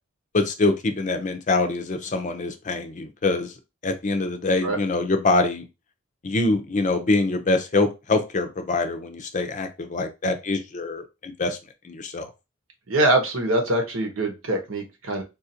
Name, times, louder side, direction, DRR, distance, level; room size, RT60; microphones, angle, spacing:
voice 1, 0.3-3.5 3.8-5.6 6.2-11.6 11.8-12.3, left 2 dB, 40° left, 7 dB, 0.5 m, -24 dB
voice 2, 12.9-15.2, right 1 dB, 80° right, 3 dB, 1.0 m, -23 dB
3.9 x 2.5 x 2.7 m, 0.26 s
head